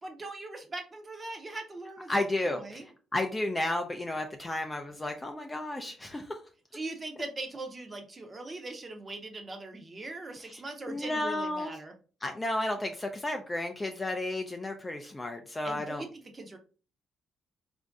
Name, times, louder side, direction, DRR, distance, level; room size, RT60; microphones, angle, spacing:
voice 1, 0.0-2.8 6.7-11.9 15.6-16.6, right 2 dB, 20° right, 5 dB, 0.7 m, -41 dB
voice 2, 2.1-6.4 10.4-10.6 10.9-11.8 12.2-16.0, left 1 dB, 15° left, 4 dB, 0.4 m, -33 dB
4.2 x 2.6 x 3.5 m, 0.37 s
cardioid pair, 160°, 0 cm